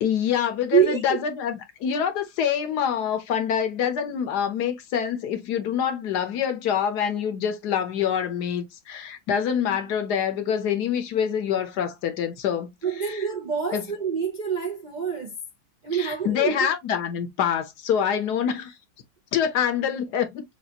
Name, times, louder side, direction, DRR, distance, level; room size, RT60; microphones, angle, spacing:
voice 1, 0.0-12.7 13.0-13.2 13.7-13.8 15.9-18.7 19.3-20.4, left 8 dB, 85° left, 1.5 m, -26 dB
voice 2, 0.7-1.2 12.8-15.3 15.8-16.7, right 7 dB, 40° right, 0.6 m, -26 dB
6.9 x 2.4 x 2.8 m
omnidirectional pair, 1.7 m